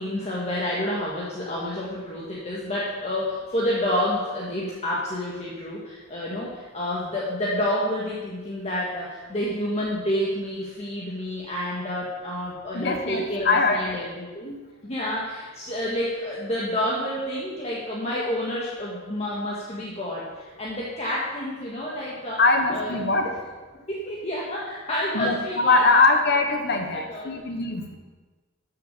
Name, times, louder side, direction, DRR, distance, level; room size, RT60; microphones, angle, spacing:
voice 1, 0.0-22.4 22.7-22.9 23.2-23.3 23.9-25.8 26.7-27.3, left 1 dB, 30° left, -6 dB, 1.8 m, -29 dB
voice 2, 12.7-13.9 22.4-23.3 25.1-28.0, left 3 dB, 55° left, 5 dB, 1.3 m, -22 dB
12.5 x 6.7 x 6.8 m, 1.3 s
head